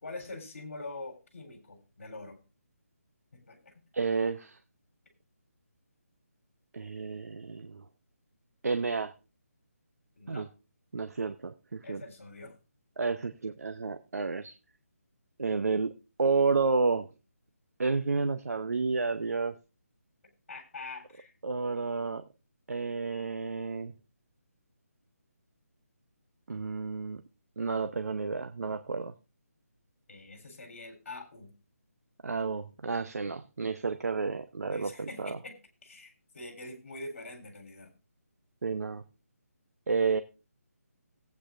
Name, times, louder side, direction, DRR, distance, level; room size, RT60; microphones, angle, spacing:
voice 1, 0.0-2.4 3.3-3.7 10.2-10.5 11.8-12.5 20.5-21.3 30.1-31.5 34.7-35.6 35.8-37.9, left 2 dB, 50° left, 4 dB, 3.6 m, -44 dB
voice 2, 3.9-4.6 6.7-7.8 8.6-9.1 10.3-10.5 10.9-12.0 13.0-14.5 15.4-15.9 16.2-17.1 17.8-19.6 21.4-22.2 22.7-23.9 26.5-27.2 27.6-29.1 32.2-35.4 38.6-39.0 39.9-40.2, right 4 dB, 75° right, 10 dB, 0.8 m, -30 dB
17.5 x 8.5 x 2.5 m, 0.31 s
hypercardioid pair, 170°, 8 cm